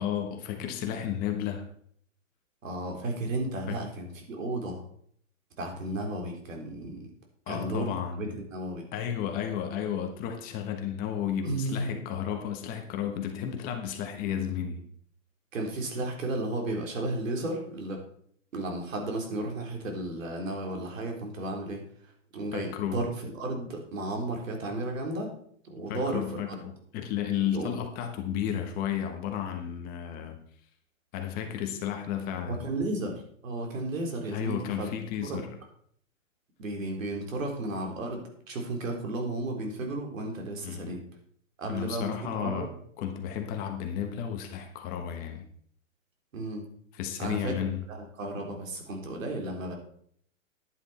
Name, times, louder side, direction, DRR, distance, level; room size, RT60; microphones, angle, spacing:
voice 1, 0.0-1.7 3.7-3.8 7.5-8.4 8.9-14.9 22.5-23.0 25.9-30.4 31.1-32.6 34.3-35.5 40.6-41.0 41.7-42.7 43.0-45.4 46.9-47.8, left 9 dB, 20° left, 4 dB, 1.2 m, -33 dB
voice 2, 2.6-4.8 5.6-7.1 7.5-7.9 8.2-8.9 11.4-12.0 15.5-18.0 18.5-21.9 22.3-25.3 25.6-26.6 27.5-27.8 32.5-34.9 35.2-35.4 36.6-41.0 41.6-42.1 42.4-42.7 46.3-46.7 47.2-47.5 47.9-49.7, right 2 dB, 75° right, 2 dB, 3.9 m, -33 dB
11.0 x 9.6 x 4.3 m, 0.62 s
hypercardioid pair, 150°, 40 cm